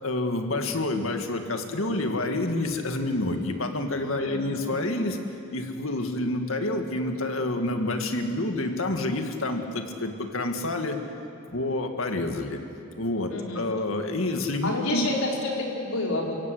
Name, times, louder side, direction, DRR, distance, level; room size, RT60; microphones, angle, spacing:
voice 1, 0.0-5.2 5.5-11.0 11.5-12.6 13.0-15.1, left 2 dB, 70° left, 5 dB, 2.1 m, -28 dB
voice 2, 4.2-4.8 13.3-13.6 14.6-16.5, left 2 dB, 85° left, -1 dB, 4.4 m, -29 dB
30.0 x 16.5 x 8.4 m, 2.8 s
head